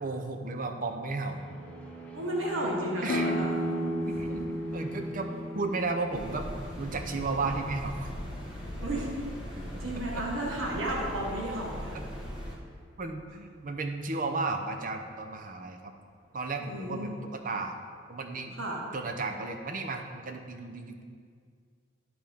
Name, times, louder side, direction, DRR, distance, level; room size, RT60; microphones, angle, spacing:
voice 1, 0.0-1.4 3.0-3.3 4.1-5.3 5.6-6.5 6.8-8.1 10.1-10.2 13.0-15.9 16.3-17.8 18.1-18.6 18.9-21.0, right 3 dB, 45° right, 5 dB, 0.6 m, -34 dB
sound 1, 1.3-18.3 18.5-19.1, right 1 dB, 10° left, 1.3 m, -49 dB
voice 2, 2.1-3.5 8.8-9.1 9.5-12.0 16.6-17.1 18.6-18.8, right 1 dB, 85° right, -3 dB, 1.5 m, -33 dB
sound 2, 3.1-8.5, equal, 70° left, 0.7 m, -34 dB
sound 3, 6.1-12.6, equal, 25° right, 1.4 m, -39 dB
12.5 x 4.4 x 3.6 m, 2.1 s
head